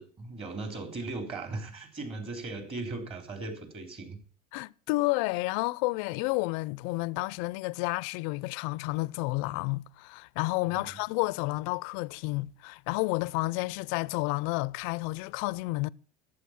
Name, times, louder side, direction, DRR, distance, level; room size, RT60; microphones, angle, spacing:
voice 1, 0.0-4.2 10.7-11.0, right 3 dB, 30° right, 3.5 m, -38 dB
voice 2, 4.5-15.9, left 23 dB, 60° left, 0.5 m, -31 dB
11.5 x 8.3 x 7.1 m
supercardioid pair, 105°, 19 cm